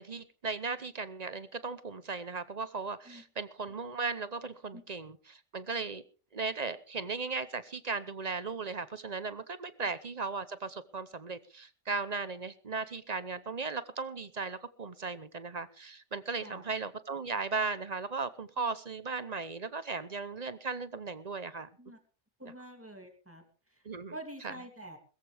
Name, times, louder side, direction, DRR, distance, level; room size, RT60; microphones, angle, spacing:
voice 1, 0.0-6.0 6.3-21.7 23.8-24.1 24.4-24.5, right 4 dB, 40° right, 14 dB, 0.9 m, -37 dB
voice 2, 22.4-23.4 23.7-23.8 24.1-25.0, right 1 dB, 10° right, 4 dB, 2.8 m, -46 dB
21.5 x 14.0 x 3.4 m, 0.37 s
omnidirectional pair, 1.2 m